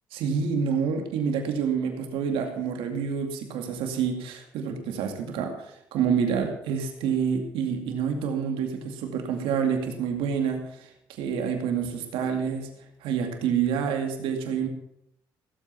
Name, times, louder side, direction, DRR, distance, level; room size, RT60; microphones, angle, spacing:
voice 1, 0.1-10.6 11.2-12.7 13.0-14.7, right 7 dB, 90° right, 4 dB, 2.4 m, -27 dB
16.5 x 8.1 x 5.8 m, 0.74 s
cardioid pair, 85°, 9 cm